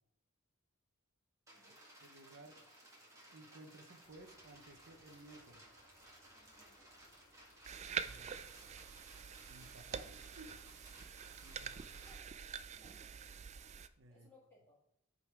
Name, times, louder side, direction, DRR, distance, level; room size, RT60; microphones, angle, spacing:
sound 1, 1.5-12.2, right 1 dB, 15° right, 1.8 m, -60 dB
voice 1, 2.1-2.6 3.3-5.7 8.0-8.3 9.5-10.6 11.4-11.9 14.0-14.3, right 2 dB, 60° right, 5 dB, 0.8 m, -57 dB
sound 2, 4.0-10.1, left 1 dB, 40° left, 1.7 m, -70 dB
voice 2, 6.3-6.9 12.1-12.9 14.1-14.8, left 2 dB, 10° left, -8 dB, 1.6 m, -67 dB
sound 3, 7.7-13.9, right 7 dB, 35° right, 0.3 m, -46 dB
8.8 x 3.9 x 4.7 m, 0.71 s
head